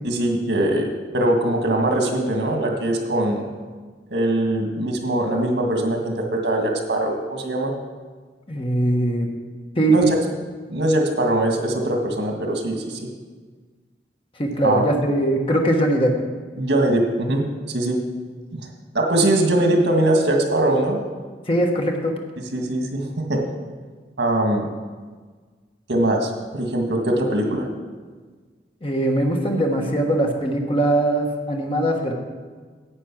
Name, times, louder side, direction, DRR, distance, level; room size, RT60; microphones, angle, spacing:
voice 1, 0.0-3.5 4.1-7.7 9.9-10.1 10.7-13.0 14.6-14.8 16.6-18.0 18.5-18.6 18.9-21.0 22.5-23.4 24.2-24.7 25.9-27.7, right 1 dB, 80° right, 3 dB, 1.7 m, -21 dB
voice 2, 8.5-9.3 9.8-10.1 14.4-16.1 21.5-22.1 28.8-32.1, right 1 dB, 30° left, 2 dB, 1.2 m, -21 dB
9.8 x 8.3 x 6.1 m, 1.5 s
head